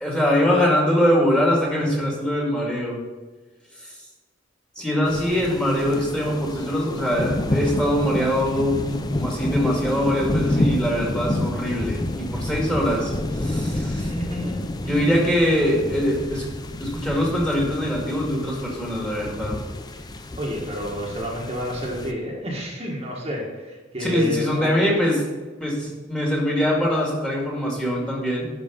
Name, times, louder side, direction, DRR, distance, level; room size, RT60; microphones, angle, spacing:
voice 1, 0.0-3.0 3.7-4.0 4.8-14.1 14.8-16.4 16.8-19.6 24.0-25.2 25.6-28.5, equal, 5° left, -3 dB, 2.1 m, -23 dB
sound 1, 5.1-22.1, left 1 dB, 20° left, 0.5 m, -29 dB
voice 2, 14.0-15.4 20.4-24.9, left 1 dB, 30° right, -3 dB, 1.6 m, -30 dB
11.0 x 5.2 x 5.3 m, 1.3 s
head